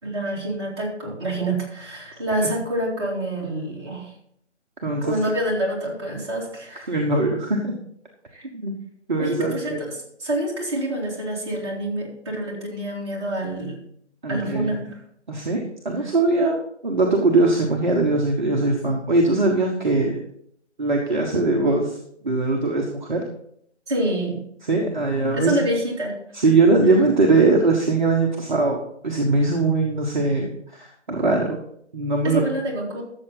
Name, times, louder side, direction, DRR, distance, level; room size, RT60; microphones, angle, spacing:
voice 1, 0.0-4.1 5.0-6.9 8.3-8.5 9.2-9.7 10.2-13.8 14.3-15.0 16.4-16.6 23.9-24.4 25.3-26.2 32.2-33.0, right 1 dB, 25° right, -4 dB, 2.7 m, -27 dB
voice 2, 4.8-5.2 6.9-7.7 8.5-8.7 9.1-9.8 14.2-14.8 15.3-20.2 20.8-23.2 24.6-25.5 26.3-31.6 31.9-32.4, right 3 dB, 40° right, 0 dB, 1.3 m, -21 dB
13.0 x 7.4 x 4.0 m, 0.70 s
figure-of-eight pair, 155°, 35 cm